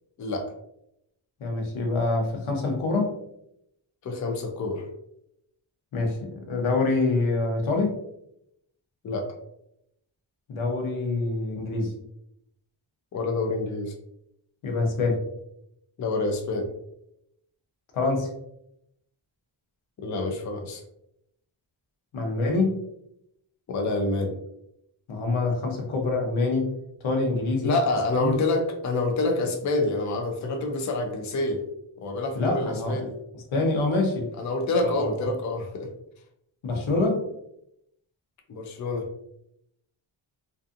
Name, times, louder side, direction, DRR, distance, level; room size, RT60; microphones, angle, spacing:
voice 1, 1.4-3.2 5.9-8.0 10.5-11.9 14.6-15.2 17.9-18.3 22.1-22.8 25.1-26.7 27.0-27.7 28.2-28.3 32.4-33.0 33.5-34.3 34.8-35.0 36.6-37.2, left 3 dB, 85° left, 2 dB, 0.8 m, -25 dB
voice 2, 4.0-4.9 9.0-9.3 13.1-13.9 16.0-16.7 20.0-20.8 23.7-24.3 27.6-31.6 32.0-33.1 34.4-35.9 38.5-39.0, left 2 dB, 40° left, 3 dB, 0.4 m, -27 dB
2.5 x 2.5 x 2.4 m, 0.78 s
wide cardioid pair, 170°, 47 cm